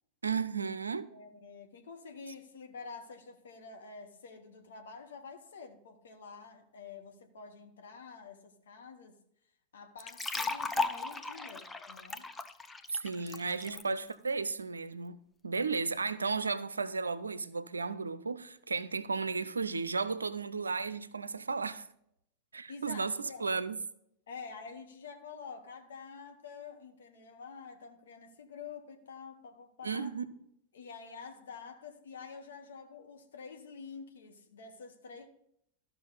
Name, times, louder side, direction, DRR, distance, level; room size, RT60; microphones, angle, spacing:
voice 1, 0.2-1.1 12.9-15.2 15.4-21.9 22.5-23.8 29.8-30.2, right 4 dB, 75° right, 0.5 m, -34 dB
voice 2, 1.1-9.2 9.7-12.3 13.2-14.0 22.7-23.5 24.3-30.2 30.7-35.3, left 5 dB, 65° left, 1.0 m, -48 dB
sound 1, 10.0-13.8, left 3 dB, 10° left, 0.5 m, -36 dB
13.5 x 5.8 x 3.9 m
figure-of-eight pair, 90°, 0 cm